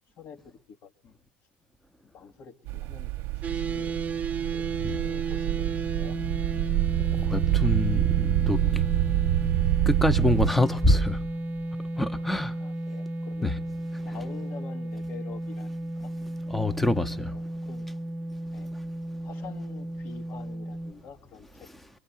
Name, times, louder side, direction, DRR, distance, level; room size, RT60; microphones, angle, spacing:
voice 1, 0.2-1.2 2.0-3.9 4.5-6.2 12.6-13.5 14.0-16.1 16.9-17.9 18.5-18.7 19.2-21.7, left 7 dB, 45° left, 1.7 m, -47 dB
sound 1, 2.7-10.5, right 15 dB, 60° right, 1.0 m, -27 dB
sound 2, 3.4-20.9, right 2 dB, 30° right, 1.1 m, -33 dB
voice 2, 7.1-8.9 9.8-11.2 11.8-12.6 13.4-13.6 13.9-14.2 16.5-17.4 18.5-19.2 21.6-21.9, left 1 dB, 5° left, 1.0 m, -27 dB
24.0 x 23.5 x 8.9 m
hypercardioid pair, 80°, 5 cm